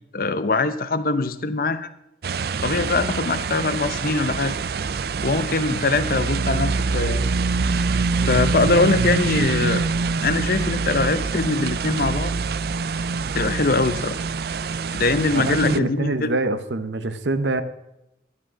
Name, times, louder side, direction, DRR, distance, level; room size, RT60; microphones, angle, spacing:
voice 1, 0.1-1.9 2.6-4.5 5.2-7.2 8.3-9.8 10.2-12.3 13.3-14.2 14.9-16.3, left 3 dB, 55° left, 13 dB, 0.7 m, -22 dB
sound 1, 2.2-15.8, right 4 dB, 60° right, 0.5 m, -25 dB
voice 2, 15.3-17.6, right 2 dB, 80° right, 12 dB, 1.0 m, -24 dB
11.5 x 11.5 x 6.2 m, 0.86 s
head